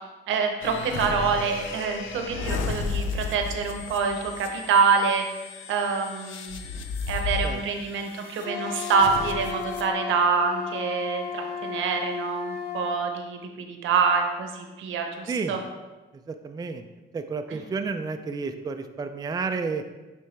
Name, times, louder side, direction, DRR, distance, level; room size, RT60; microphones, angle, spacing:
voice 1, 0.3-5.2 5.7-15.6 17.5-17.6, right 5 dB, 80° right, 4 dB, 0.8 m, -26 dB
sound 1, 0.6-9.9, left 5 dB, 80° left, 0.5 m, -34 dB
Wind instrument woodwind instrument, 8.4-13.1, left 6 dB, 55° left, 0.8 m, -34 dB
voice 2, 16.3-16.8 17.1-19.8, right 4 dB, 20° right, 6 dB, 0.4 m, -31 dB
9.0 x 3.3 x 3.2 m, 1.2 s
cardioid pair, 90°, 20 cm